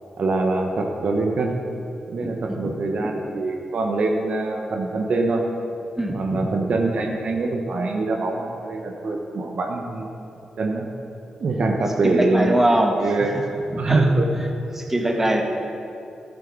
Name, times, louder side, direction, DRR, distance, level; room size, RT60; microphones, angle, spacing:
voice 1, 0.2-1.6 2.1-5.4 6.1-10.2 10.6-10.9 11.4-12.5 13.0-13.4 13.8-14.3, right 3 dB, 65° right, 2 dB, 1.1 m, -24 dB
voice 2, 2.2-2.7 6.0-6.5 11.9-13.4 13.7-14.0 14.7-15.4, right 1 dB, 15° right, 2 dB, 1.6 m, -23 dB
12.5 x 6.7 x 6.1 m, 2.7 s
supercardioid pair, 45°, 2 cm